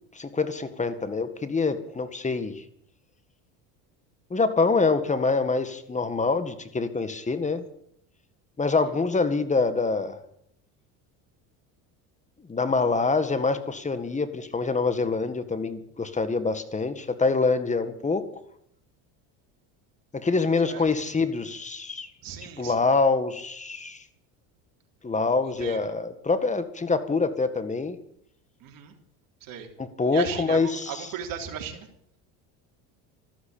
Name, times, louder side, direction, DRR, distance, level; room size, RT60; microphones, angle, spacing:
voice 1, 0.2-2.6 4.3-7.6 8.6-10.2 12.5-18.2 20.1-22.1 22.6-24.0 25.0-28.0 29.8-31.1, left 4 dB, 20° left, 11 dB, 1.8 m, -25 dB
voice 2, 22.2-22.9 25.6-25.8 28.6-28.9 29.4-29.7 30.1-31.9, right 8 dB, 55° right, 2 dB, 3.7 m, -36 dB
13.5 x 12.5 x 8.7 m, 0.71 s
supercardioid pair, 100°, 39 cm